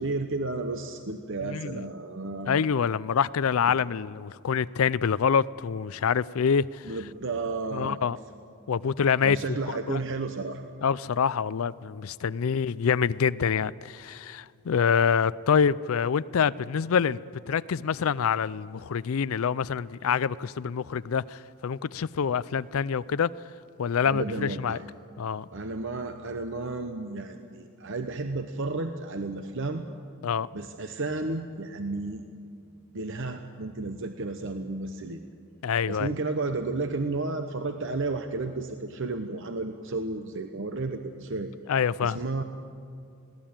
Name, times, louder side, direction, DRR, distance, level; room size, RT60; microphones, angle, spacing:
voice 1, 0.0-2.5 3.7-3.8 6.8-8.0 9.2-10.6 24.0-24.9 25.5-29.8 30.5-32.3 32.9-35.2 35.9-41.5 42.0-42.4, right 3 dB, 60° right, 1.0 m, -32 dB
voice 2, 1.4-1.8 2.5-6.9 7.7-8.2 8.7-10.0 10.8-17.2 17.5-23.3 23.8-24.8 25.2-25.5 30.2-30.5 35.6-36.2 41.7-42.2, left 6 dB, 70° left, 0.4 m, -26 dB
21.5 x 17.0 x 8.9 m
head